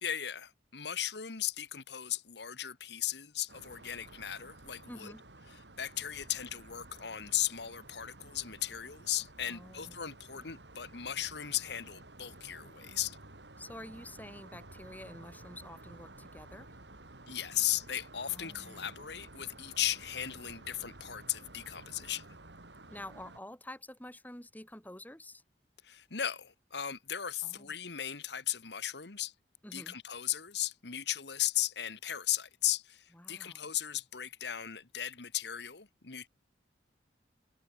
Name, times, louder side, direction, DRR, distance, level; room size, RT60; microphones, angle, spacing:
voice 1, 0.0-5.1 5.5-13.2 17.3-22.2 25.8-29.3 29.7-36.3, left 11 dB, 75° left, 1.6 m, -36 dB
sound 1, 3.5-23.4, right 2 dB, 80° right, 3.9 m, -53 dB
voice 2, 4.9-5.2 9.5-10.1 13.6-16.8 18.3-18.9 22.9-25.4 27.4-27.7 29.6-30.0 33.1-33.7, left 1 dB, 10° left, 3.2 m, -49 dB
head